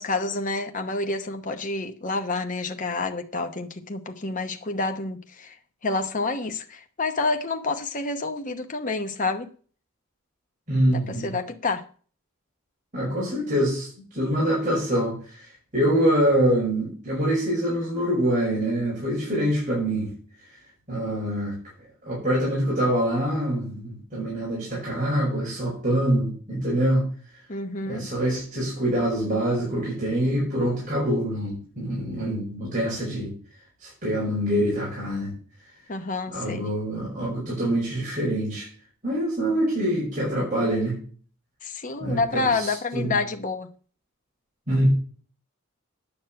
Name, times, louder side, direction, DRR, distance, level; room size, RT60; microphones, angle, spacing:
voice 1, 0.0-5.6 5.8-9.5 10.9-11.9 27.5-28.1 35.9-36.7 41.6-43.7, left 3 dB, 40° left, 0.9 m, -28 dB
voice 2, 10.7-11.3 12.9-15.4 15.7-20.1 20.9-21.6 22.0-27.0 27.9-33.3 33.8-35.3 36.3-38.7 39.0-41.0 42.0-43.2 44.7-44.8, right 1 dB, 35° right, 5.7 m, -25 dB
9.8 x 6.2 x 7.9 m
head